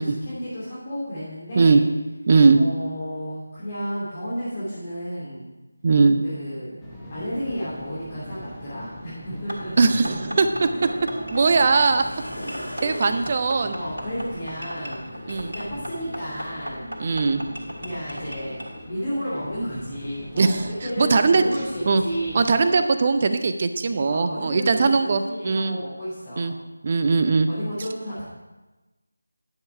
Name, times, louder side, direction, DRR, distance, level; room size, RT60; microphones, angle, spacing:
voice 1, 0.0-1.8 2.5-5.5 6.2-6.8 7.1-10.3 10.7-11.0 11.5-11.6 12.4-13.1 13.7-16.8 17.8-22.9 24.0-26.5 27.5-28.2, equal, 30° left, -11 dB, 2.8 m, -32 dB
voice 2, 2.3-2.6 5.8-6.2 9.8-10.7 11.3-12.0 12.8-13.7 15.3-15.5 17.0-17.4 20.4-20.7 21.0-21.4 21.9-22.0 22.3-25.8 26.4-26.5 26.8-27.5, right 4 dB, 30° right, 9 dB, 0.6 m, -19 dB
sound 1, 6.8-22.6, equal, 5° left, 1.0 m, -42 dB
sound 2, 9.5-18.7, equal, 80° right, 3.1 m, -37 dB
sound 3, 10.8-10.9 11.9-13.7 14.9-15.0 15.5-15.7, equal, 80° left, 4.0 m, -39 dB
11.0 x 7.0 x 4.7 m, 1.1 s
figure-of-eight pair, 165°, 0 cm